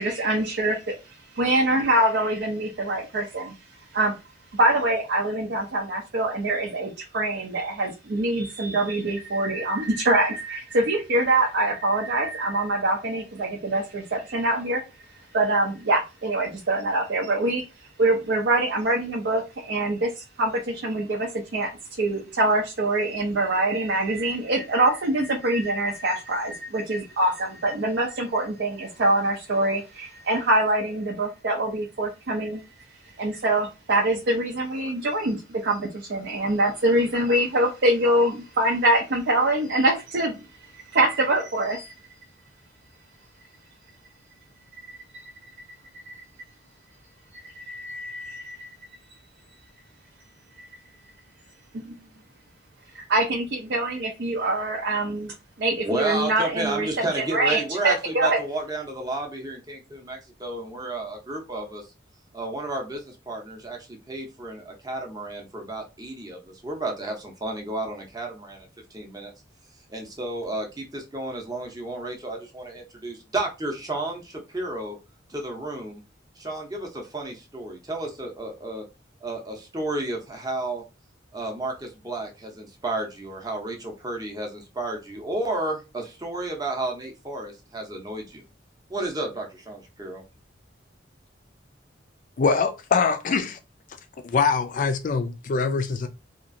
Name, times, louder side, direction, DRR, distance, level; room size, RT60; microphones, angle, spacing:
voice 1, 0.0-3.6 3.9-4.2 4.5-14.8 15.3-17.6 18.0-21.7 22.0-32.6 33.2-40.5 40.9-41.9 44.9-45.0 45.2-45.3 46.1-46.2 47.3-48.7 50.6-50.7 51.7-52.0 52.9-58.4, right 1 dB, 60° right, 0.5 m, -24 dB
voice 2, 55.8-61.9 62.3-68.7 68.9-69.3 69.9-74.9 75.3-76.0 76.4-78.8 79.2-80.8 81.3-88.4 88.9-90.2, right 2 dB, 20° right, 0.6 m, -32 dB
voice 3, 92.4-93.6 94.2-96.1, left 5 dB, 45° left, 0.3 m, -23 dB
2.8 x 2.4 x 2.6 m
head